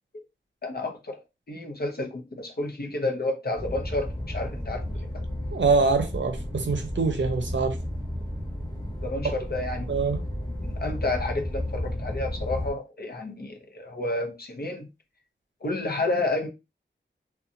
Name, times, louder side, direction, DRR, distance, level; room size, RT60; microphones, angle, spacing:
voice 1, 0.6-1.2 1.5-4.9 5.1-5.3 9.0-9.9 10.6-14.8 15.6-16.5, left 2 dB, 50° left, 0.7 m, -30 dB
sound 1, 3.6-12.7, left 1 dB, 20° left, 1.1 m, -33 dB
voice 2, 5.5-7.8 9.2-9.3 9.9-10.2, right 4 dB, 70° right, 0.6 m, -24 dB
2.5 x 2.3 x 2.7 m
wide cardioid pair, 50°, 20 cm